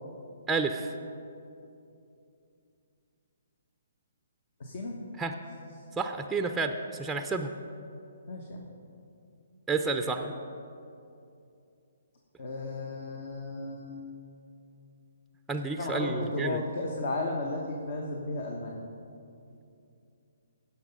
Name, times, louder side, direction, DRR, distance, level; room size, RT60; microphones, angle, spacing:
voice 1, 0.5-0.9 5.2-5.3 6.0-7.5 9.7-10.3 15.5-16.6, right 4 dB, 5° right, 6 dB, 0.5 m, -30 dB
voice 2, 4.6-5.0 8.3-8.6 12.4-14.1 15.8-18.8, left 2 dB, 55° left, 1 dB, 1.2 m, -34 dB
16.5 x 5.9 x 5.4 m, 2.6 s
figure-of-eight pair, 135°, 0 cm